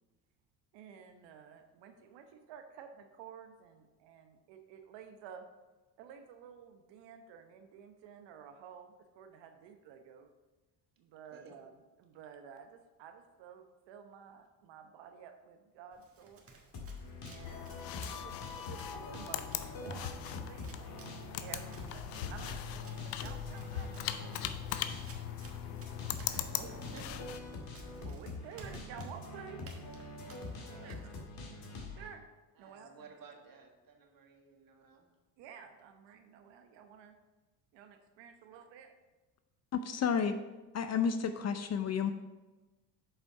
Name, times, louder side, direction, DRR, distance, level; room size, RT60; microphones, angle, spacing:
voice 1, 0.7-5.4 6.0-10.3 11.0-16.5 17.2-24.4 28.0-29.6 30.8-31.1 31.9-32.2 32.6-33.1 35.4-37.1 37.7-38.9, right 7 dB, 65° right, 6 dB, 0.9 m, -52 dB
Run, 15.9-31.2, right 4 dB, 30° right, 1.5 m, -55 dB
sound 1, 16.7-32.1, left 3 dB, 50° left, 2.1 m, -45 dB
sound 2, 17.4-27.4, left 11 dB, 90° left, 0.6 m, -40 dB
voice 2, 26.2-27.3 30.6-31.3 32.6-35.1 40.2-40.4, right 4 dB, 45° right, 2 dB, 1.7 m, -54 dB
voice 3, 39.7-40.3 40.7-42.1, left 7 dB, 35° left, 9 dB, 0.5 m, -31 dB
7.5 x 5.1 x 4.7 m, 1.2 s
hypercardioid pair, 70°, 47 cm